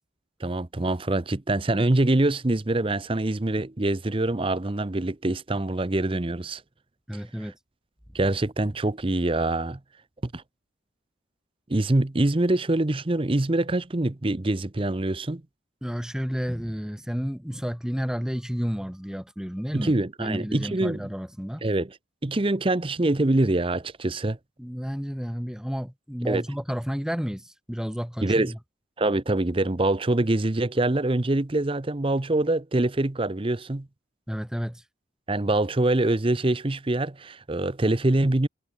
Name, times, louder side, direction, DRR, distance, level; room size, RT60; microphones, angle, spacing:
voice 1, 0.4-6.6 8.1-9.8 10.2-10.4 11.7-15.4 19.7-21.0 21.6-22.0 22.2-24.4 26.3-26.4 28.2-28.5 29.0-33.9 35.3-38.5, right 2 dB, 25° right, 0.7 m, -24 dB
voice 2, 7.1-7.5 15.8-19.9 20.2-21.7 24.6-28.6 34.3-34.8, equal, 5° right, 1.0 m, -31 dB
head